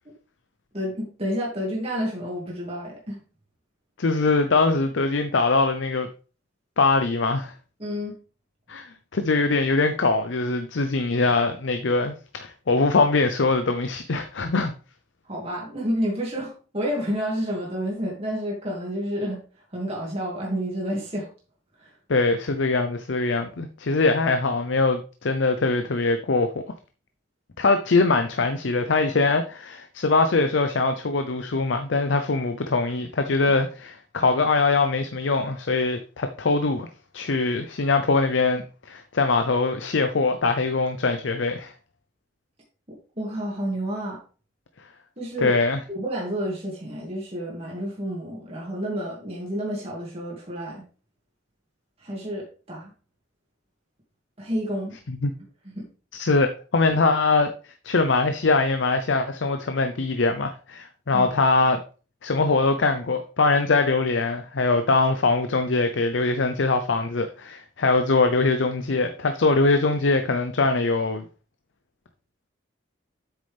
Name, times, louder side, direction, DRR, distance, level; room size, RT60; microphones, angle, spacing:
voice 1, 0.7-3.2 7.8-8.2 15.3-19.4 19.7-21.3 21.8-21.9 43.2-44.2 45.2-45.6 45.9-50.8 52.0-52.9 54.4-54.9 55.6-55.8 61.1-61.3, equal, 30° right, 2.3 m, -30 dB
voice 2, 4.0-6.1 6.8-7.5 8.7-14.7 22.1-26.6 27.6-36.9 37.1-41.7 45.4-45.8 55.1-55.3 56.1-57.5 57.8-61.8 62.2-71.3, left 3 dB, 75° left, 0.6 m, -22 dB
8.2 x 6.5 x 3.4 m
head